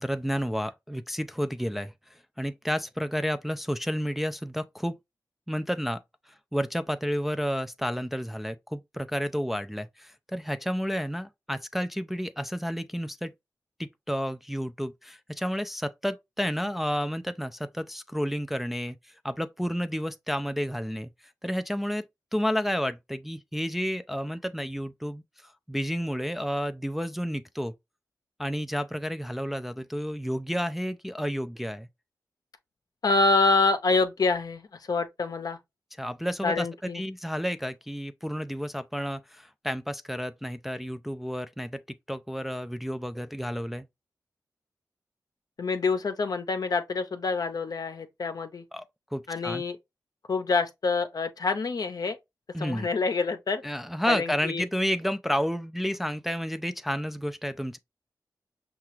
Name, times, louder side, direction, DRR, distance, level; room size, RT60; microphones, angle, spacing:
voice 1, 0.0-4.9 5.5-6.0 6.3-13.3 13.8-21.1 21.4-22.0 22.3-25.2 25.7-27.7 28.4-31.9 36.0-36.7 36.9-41.8 42.1-43.9 48.7-48.8 49.1-49.6 52.5-52.9 53.6-57.8, equal, 5° right, 0.3 m, -31 dB
voice 2, 33.0-35.6 36.4-37.0 45.6-48.6 49.3-49.8 50.3-52.2 52.6-53.6 54.1-54.6, left 3 dB, 60° left, 0.6 m, -26 dB
5.7 x 2.4 x 3.0 m
cardioid pair, 55°, 7 cm